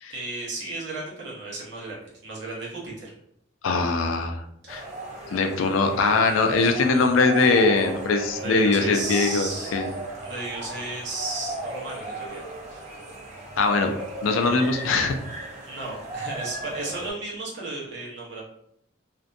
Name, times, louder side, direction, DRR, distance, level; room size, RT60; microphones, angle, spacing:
voice 1, 0.1-3.1 8.4-9.9 10.2-12.8 15.6-18.4, right 2 dB, 60° right, -5 dB, 0.9 m, -34 dB
voice 2, 3.6-4.4 4.7-4.8 5.3-9.9 13.6-14.0 14.2-15.2, left 3 dB, 85° left, 5 dB, 0.4 m, -21 dB
sound 1, 4.7-17.1, right 2 dB, 35° right, 0.5 m, -36 dB
2.5 x 2.1 x 2.5 m, 0.72 s
head